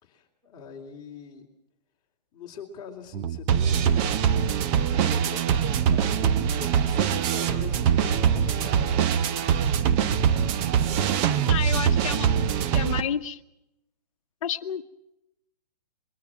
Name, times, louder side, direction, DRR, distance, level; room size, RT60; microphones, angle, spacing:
voice 1, 0.0-1.5 2.3-4.3 4.7-9.7 10.6-12.0, left 6 dB, 20° left, 0 dB, 3.5 m, -44 dB
sound 1, 3.1-13.0, right 8 dB, 25° right, 0.9 m, -23 dB
voice 2, 11.5-12.3 12.6-13.4 14.4-14.8, left 8 dB, 55° left, 8 dB, 1.3 m, -30 dB
23.5 x 22.5 x 6.1 m, 0.86 s
hypercardioid pair, 140°, 21 cm